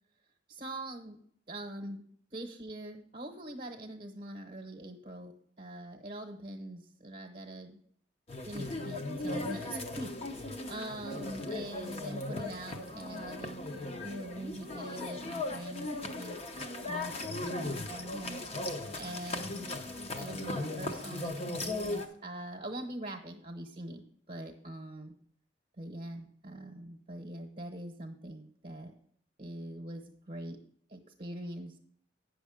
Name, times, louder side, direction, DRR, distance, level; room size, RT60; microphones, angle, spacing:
voice 1, 0.5-1.2 1.5-2.0 2.3-5.3 5.6-7.8 8.4-13.7 14.0-16.4 16.8-18.4 19.0-24.0 24.3-25.1 25.8-29.0 29.4-30.6 30.9-31.8, right 1 dB, 40° right, 1 dB, 0.9 m, -43 dB
sound 1, 8.3-22.1, left 2 dB, 35° left, 0.8 m, -38 dB
9.1 x 6.3 x 4.9 m, 0.63 s
head